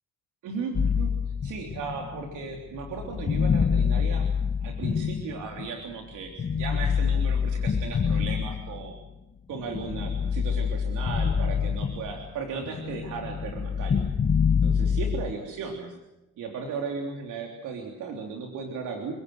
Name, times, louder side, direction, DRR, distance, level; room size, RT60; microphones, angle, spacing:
voice 1, 0.4-1.1 1.4-4.3 4.6-8.9 9.5-14.1 14.6-15.9 16.4-19.1, right 5 dB, 85° right, 2 dB, 3.4 m, -36 dB
sound 1, 0.7-5.8 6.4-9.0 9.5-12.4 12.6-15.3, left 6 dB, 35° left, 1.7 m, -26 dB
29.0 x 18.0 x 7.9 m, 0.99 s
cardioid pair, 90°, 30 cm